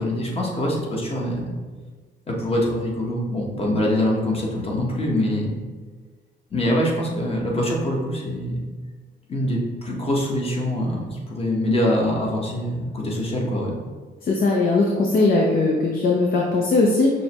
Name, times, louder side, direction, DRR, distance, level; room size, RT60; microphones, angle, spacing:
voice 1, 0.0-1.6 2.3-5.6 6.5-8.6 9.3-13.7, left 1 dB, 30° left, -2 dB, 1.0 m, -24 dB
voice 2, 14.3-17.1, left 3 dB, 50° left, -2 dB, 0.6 m, -19 dB
6.1 x 2.1 x 2.9 m, 1.4 s
cardioid pair, 90°, 20 cm